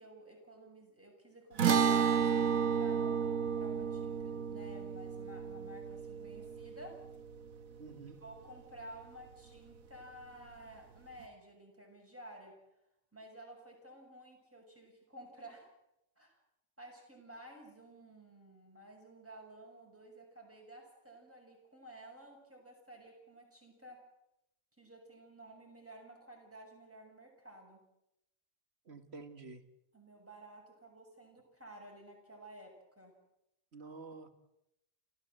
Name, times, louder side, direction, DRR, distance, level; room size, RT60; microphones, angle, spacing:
voice 1, 0.0-7.0 8.2-12.6 13.1-15.7 16.2-16.4 16.8-24.0 24.8-27.8 29.9-33.1, right 1 dB, 10° right, 0 dB, 6.5 m, -53 dB
sound 1, 1.6-8.1, right 7 dB, 80° right, 1.6 m, -32 dB
voice 2, 7.8-8.2 28.9-29.6 33.7-34.3, right 4 dB, 50° right, 8 dB, 2.0 m, -49 dB
28.5 x 15.0 x 7.8 m, 0.86 s
omnidirectional pair, 1.4 m